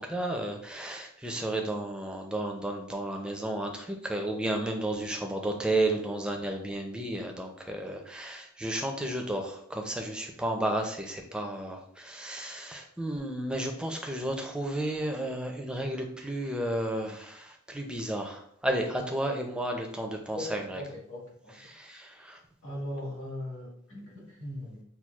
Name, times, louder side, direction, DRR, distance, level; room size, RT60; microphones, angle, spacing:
voice 1, 0.0-20.8 21.7-22.4, right 1 dB, 5° right, 2 dB, 0.4 m, -32 dB
voice 2, 20.3-21.6 22.6-24.8, left 1 dB, 70° left, -3 dB, 1.5 m, -39 dB
5.8 x 2.3 x 2.3 m, 0.66 s
head